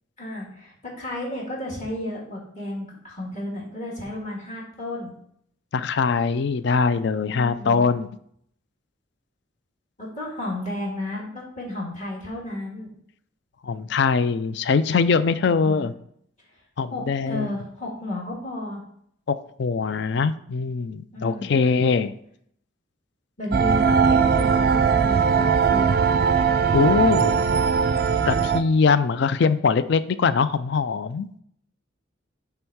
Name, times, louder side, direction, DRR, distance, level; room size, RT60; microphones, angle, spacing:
voice 1, 0.2-5.1 7.3-7.9 10.0-12.9 15.4-15.9 16.9-18.8 21.1-21.6 23.4-26.0, left 1 dB, 35° left, -3 dB, 1.8 m, -33 dB
voice 2, 5.7-8.1 13.6-15.9 16.8-17.5 19.3-22.1 26.7-27.4 28.3-31.3, left 5 dB, 60° left, 14 dB, 0.4 m, -22 dB
sound 1, 23.5-28.6, right 6 dB, 50° right, 0.4 m, -20 dB
8.9 x 3.5 x 4.6 m, 0.68 s
head